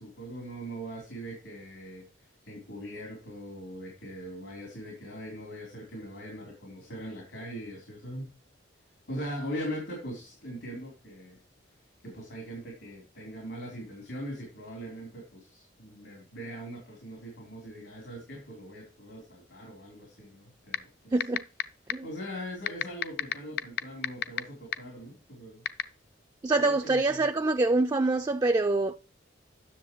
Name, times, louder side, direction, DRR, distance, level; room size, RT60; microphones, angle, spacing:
voice 1, 0.0-8.3 9.1-11.4 12.0-21.1 22.0-25.6 26.5-27.3, equal, 85° left, 3.4 m, -41 dB
sound 1, 20.7-20.8 21.2-21.6 21.9-22.0 22.7-24.4 24.7-24.8 25.7-25.8, left 10 dB, 55° left, 0.5 m, -25 dB
voice 2, 21.1-21.4 21.9-22.1 26.4-29.0, right 2 dB, 20° right, 0.3 m, -25 dB
10.0 x 6.8 x 3.0 m
head